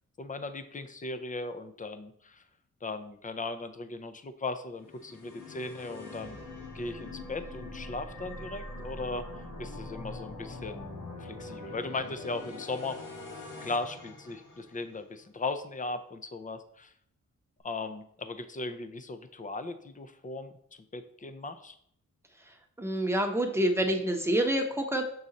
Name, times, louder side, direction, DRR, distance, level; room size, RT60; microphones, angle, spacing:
voice 1, 0.2-2.4 2.8-6.4 6.7-9.3 9.6-10.9 11.2-13.0 13.6-16.9 17.6-21.8, left 3 dB, 25° left, 10 dB, 0.6 m, -37 dB
sound 1, 4.8-15.0, left 2 dB, 75° left, 1.7 m, -43 dB
voice 2, 22.8-25.1, right 1 dB, 10° right, 3 dB, 1.0 m, -27 dB
6.2 x 4.0 x 4.1 m, 0.68 s
cardioid pair, 70°, 32 cm